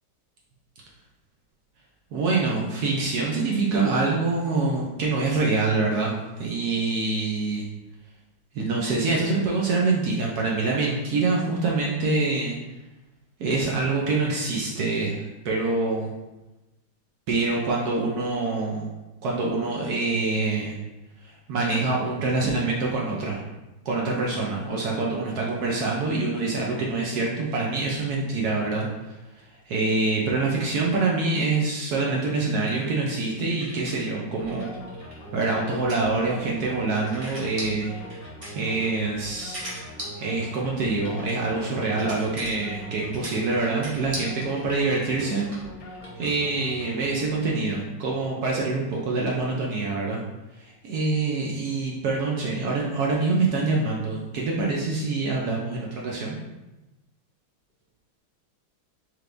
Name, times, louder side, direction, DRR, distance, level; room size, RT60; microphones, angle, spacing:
voice 1, 2.1-7.6 8.5-12.6 13.4-16.1 17.3-18.9 19.2-20.7 21.2-23.4 23.8-29.2 29.7-34.7 35.3-37.9 38.5-39.7 40.2-45.5 46.2-50.2 50.5-56.4, right 3 dB, 70° right, -2 dB, 0.9 m, -25 dB
sound 1, 32.1-34.1 34.4-46.2, equal, 40° right, 0.4 m, -41 dB
sound 2, 34.4-47.7, equal, 75° left, 1.5 m, -42 dB
4.4 x 3.3 x 2.5 m, 1.0 s
omnidirectional pair, 2.2 m